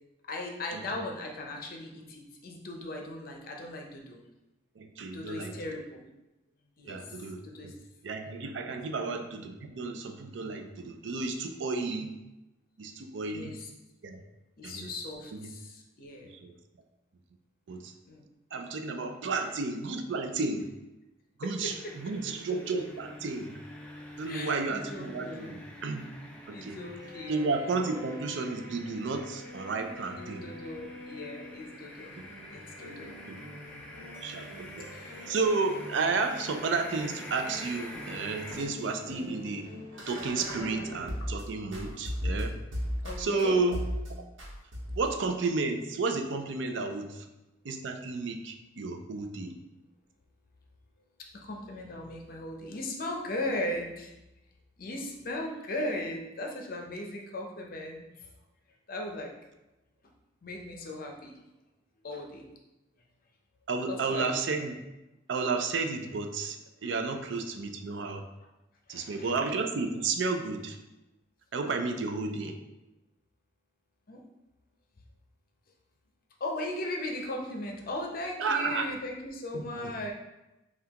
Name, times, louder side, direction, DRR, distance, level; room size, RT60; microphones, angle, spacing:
voice 1, 0.3-4.2 5.1-6.1 6.8-7.1 7.4-7.7 8.9-9.1 13.3-13.7 14.6-16.3 18.1-18.2 19.3-19.4 21.4-21.5 24.2-25.7 26.5-27.5 27.9-28.0 30.2-32.1 32.5-33.1 33.6-34.0 34.9-35.2 43.0-43.6 51.3-54.1 54.8-58.3 58.9-59.3 60.4-61.4 62.0-62.5 63.9-64.4 66.8-66.9 68.9-69.3 74.1-74.2 76.4-80.1, left 1 dB, 50° left, 1 dB, 0.6 m, -38 dB
voice 2, 4.8-5.5 6.8-7.4 8.0-12.1 12.8-13.5 14.0-14.2 14.6-14.9 15.3-15.4 16.4-16.5 17.7-17.9 18.5-20.7 21.4-23.6 24.2-26.0 26.5-26.8 27.3-30.4 33.3-33.4 34.0-34.9 35.2-39.7 40.1-42.5 43.2-43.8 44.1-44.2 45.0-47.2 47.6-49.5 63.7-64.8 65.3-68.2 68.9-70.8 71.5-72.6 78.4-78.8 79.8-79.9, right 4 dB, 65° right, 5 dB, 0.4 m, -32 dB
sound 1, 21.7-38.7, left 1 dB, 5° left, 0.4 m, -47 dB
Bowed string instrument, 26.7-31.8, left 1 dB, 50° right, 1.2 m, -47 dB
sound 2, 31.7-41.4 41.7-43.4 43.7-44.1 44.4-45.1, equal, 80° right, 1.1 m, -39 dB
5.6 x 2.3 x 2.9 m, 0.97 s
head